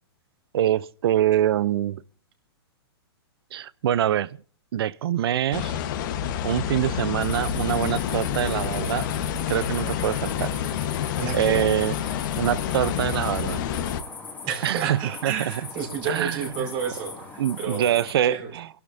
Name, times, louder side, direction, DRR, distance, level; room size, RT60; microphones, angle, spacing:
voice 1, 0.5-2.0 3.5-4.4 4.7-5.8 6.4-9.1 9.5-10.5 11.3-11.9 12.3-13.6 14.6-15.3 16.1-16.7 17.4-18.7, right 11 dB, 65° right, 0.6 m, -24 dB
sound 1, 5.5-14.0, left 9 dB, 50° left, 1.2 m, -28 dB
sound 2, 7.2-18.1, left 4 dB, 15° left, 2.3 m, -40 dB
voice 2, 11.2-11.7 14.4-18.5, right 7 dB, 40° right, 5.0 m, -31 dB
29.0 x 12.0 x 2.6 m
hypercardioid pair, 130°, 14 cm